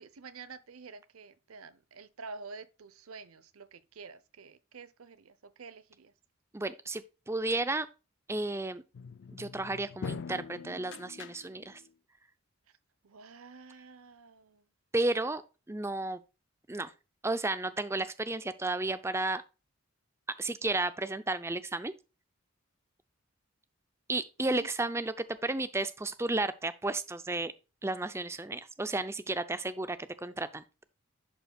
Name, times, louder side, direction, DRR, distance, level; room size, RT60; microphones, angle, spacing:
voice 1, 0.0-6.1 13.0-14.6 24.4-24.7, right 4 dB, 85° right, 0.7 m, -49 dB
voice 2, 6.5-7.9 8.3-8.8 9.3-11.8 14.9-15.4 15.7-16.2 16.7-16.9 17.2-19.4 20.4-21.9 24.1-25.1 25.4-27.5 27.8-30.6, right 2 dB, 10° right, 0.4 m, -33 dB
sound 1, 8.9-11.9, left 5 dB, 55° left, 0.4 m, -43 dB
11.0 x 5.3 x 2.3 m
head